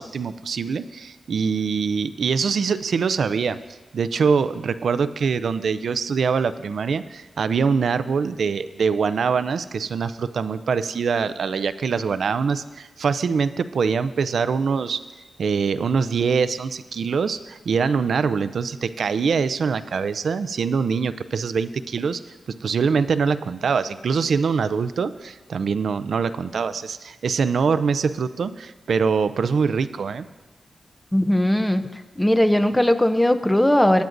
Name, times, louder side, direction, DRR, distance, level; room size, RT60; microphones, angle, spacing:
voice 1, 0.0-3.6 3.9-15.0 15.4-22.2 22.6-30.3, right 5 dB, 75° right, 13 dB, 0.4 m, -23 dB
voice 2, 31.1-31.8 32.2-34.0, left 1 dB, 10° left, 9 dB, 0.5 m, -18 dB
18.5 x 9.2 x 2.6 m, 1.2 s
wide cardioid pair, 85°, 0 cm